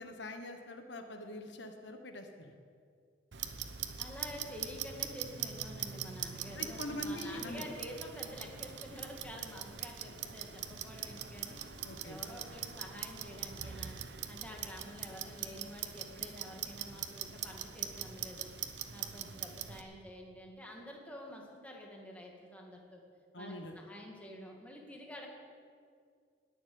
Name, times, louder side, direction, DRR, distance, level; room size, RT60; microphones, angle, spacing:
voice 1, 0.0-2.5 6.5-7.7 11.8-12.2 23.3-23.7, left 1 dB, 75° left, 6 dB, 1.3 m, -43 dB
Clock, 3.3-19.8, right 9 dB, 75° right, 0.9 m, -42 dB
voice 2, 4.0-11.6 12.0-18.5 18.9-23.0 23.4-25.3, equal, 10° left, -1 dB, 2.1 m, -49 dB
War Ambience Loop, 8.3-9.7 10.1-12.3 12.6-13.9, left 1 dB, 40° left, 2.7 m, -63 dB
20.0 x 7.2 x 7.9 m, 2.2 s
head